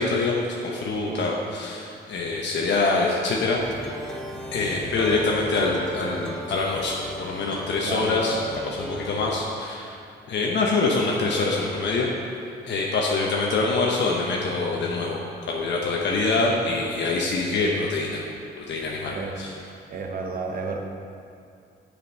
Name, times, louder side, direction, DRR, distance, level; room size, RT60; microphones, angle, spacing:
voice 1, 0.0-3.6 4.5-8.4 8.6-10.0 10.3-12.1 12.6-15.2 15.5-18.2 18.6-19.5, left 3 dB, 65° left, -2 dB, 0.9 m, -25 dB
Plucked string instrument, 3.5-9.3, equal, 5° left, 0.9 m, -36 dB
voice 2, 19.9-20.8, right 4 dB, 45° right, 2 dB, 1.0 m, -31 dB
7.5 x 5.2 x 5.3 m, 2.5 s
cardioid pair, 90°, 20 cm